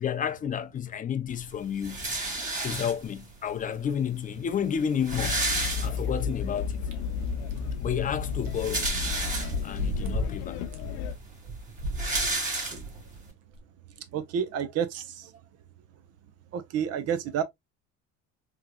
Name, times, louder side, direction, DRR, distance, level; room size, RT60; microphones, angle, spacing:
voice 1, 0.0-2.0 2.6-5.4 5.8-6.8 7.8-8.9 9.6-10.6, left 8 dB, 25° left, 0.5 m, -31 dB
sound 1, 1.8-3.3 4.1-4.2 4.4-4.5 4.8-6.4 6.8-6.9 8.3-9.8 10.5-10.6 10.8-13.2, right 2 dB, 25° right, 2.1 m, -31 dB
sound 2, 5.1-11.2, left 6 dB, 85° left, 0.6 m, -33 dB
sound 3, 6.9-7.0 7.5-7.6 8.5-8.6 8.8-10.3 10.7-10.8 11.6-12.3 12.9-13.0 13.6-13.7, equal, 75° right, 1.0 m, -33 dB
voice 2, 14.1-15.3 16.5-17.4, right 8 dB, 50° right, 0.7 m, -30 dB
3.6 x 3.0 x 2.2 m
cardioid pair, 115°, 31 cm